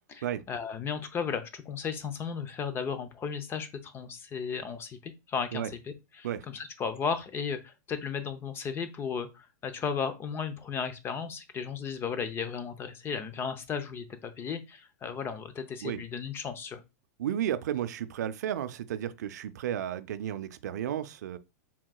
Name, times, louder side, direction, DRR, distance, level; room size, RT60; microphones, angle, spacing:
voice 1, 0.1-5.6 6.2-16.8, left 6 dB, 25° left, 0.6 m, -35 dB
voice 2, 17.2-21.4, right 10 dB, 80° right, 0.4 m, -33 dB
4.6 x 3.6 x 2.3 m
hypercardioid pair, 125°, 9 cm